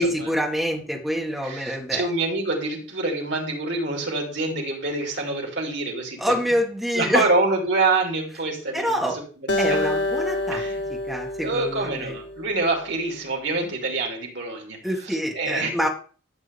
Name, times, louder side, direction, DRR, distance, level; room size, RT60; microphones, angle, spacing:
voice 1, 0.0-2.0 6.2-7.3 8.7-9.2 9.6-10.6 10.9-12.1 14.8-15.9, equal, ahead, -1 dB, 1.8 m, -26 dB
voice 2, 1.4-6.3 6.9-9.0 9.7-9.8 10.5-10.8 11.4-15.7, right 3 dB, 70° right, 2 dB, 3.0 m, -26 dB
Acoustic guitar, 9.5-12.8, left 2 dB, 65° left, 1.2 m, -27 dB
12.5 x 7.9 x 3.5 m, 0.40 s
head